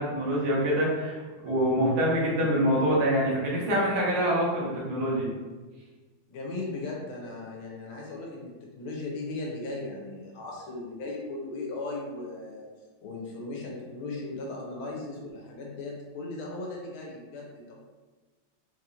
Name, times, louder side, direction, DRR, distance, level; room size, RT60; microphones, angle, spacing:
voice 1, 0.0-5.3, equal, 55° right, -4 dB, 1.3 m, -25 dB
voice 2, 6.3-12.7 13.0-17.8, left 2 dB, 85° left, -2 dB, 1.6 m, -37 dB
4.0 x 2.8 x 2.5 m, 1.3 s
omnidirectional pair, 2.2 m